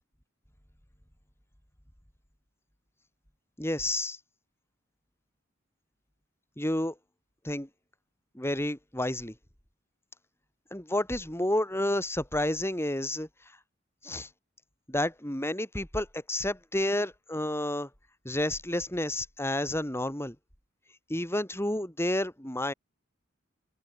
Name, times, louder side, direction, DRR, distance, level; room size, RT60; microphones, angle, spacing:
voice 1, 3.6-4.2 6.6-6.9 7.4-7.7 8.3-9.3 10.7-13.3 14.0-14.3 14.9-17.9 18.2-20.4 21.1-22.7, left 1 dB, 15° left, 5.9 m, -30 dB
head